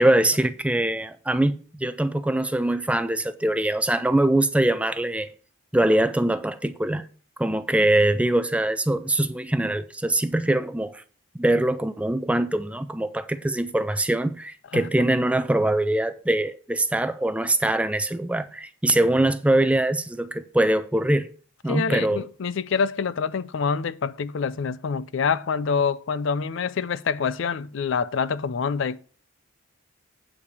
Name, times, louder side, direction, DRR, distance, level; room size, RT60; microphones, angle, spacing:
voice 1, 0.0-5.3 5.7-7.1 7.4-11.0 11.3-21.3 21.6-22.2, right 1 dB, 5° right, 0.4 m, -23 dB
voice 2, 21.7-29.0, left 5 dB, 60° left, 0.4 m, -26 dB
8.5 x 4.9 x 7.0 m
head